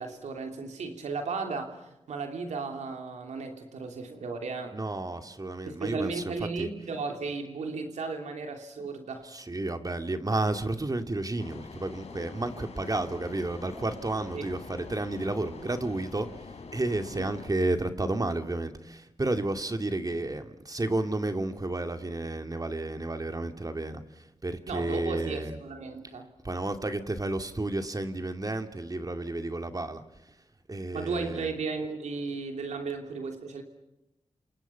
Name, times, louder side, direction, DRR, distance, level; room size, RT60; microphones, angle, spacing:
voice 1, 0.0-4.7 5.6-9.3 14.3-14.4 17.1-17.3 24.7-26.3 30.9-33.6, right 4 dB, 85° right, 4 dB, 2.9 m, -35 dB
voice 2, 4.7-6.7 9.2-16.3 16.7-25.6 26.4-30.0 30.7-31.5, right 2 dB, 30° right, 7 dB, 2.5 m, -31 dB
sound 1, 11.4-17.5, left 4 dB, 65° left, 3.3 m, -45 dB
28.0 x 27.5 x 5.9 m, 0.91 s
cardioid pair, 45°, 12 cm